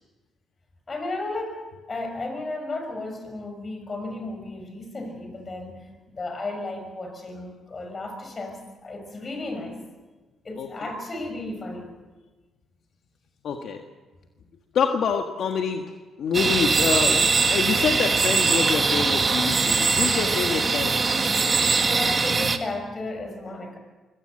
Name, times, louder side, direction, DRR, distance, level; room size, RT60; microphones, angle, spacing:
voice 1, 0.9-5.8 6.1-9.8 10.4-11.9 20.2-20.4 21.9-23.8, left 2 dB, 35° left, 5 dB, 6.1 m, -34 dB
voice 2, 13.4-13.8 14.7-15.8 16.2-21.2, left 6 dB, 65° left, 4 dB, 1.6 m, -26 dB
sound 1, 16.3-22.6, right 4 dB, 35° right, 1.5 m, -22 dB
23.5 x 17.5 x 7.8 m, 1.2 s
cardioid pair, 90°, 0 cm